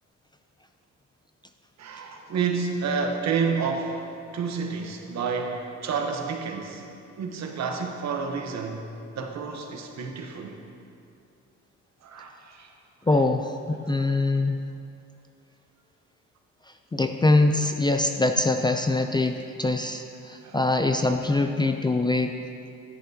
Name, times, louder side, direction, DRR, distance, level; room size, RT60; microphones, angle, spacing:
voice 1, 1.8-4.1 4.3-10.6 12.0-12.7 20.4-20.6, right 5 dB, 60° right, 3 dB, 1.1 m, -30 dB
voice 2, 13.1-14.6 16.9-22.4, left 2 dB, 15° left, 5 dB, 0.4 m, -23 dB
10.5 x 9.9 x 2.8 m, 2.5 s
cardioid pair, 90°, 30 cm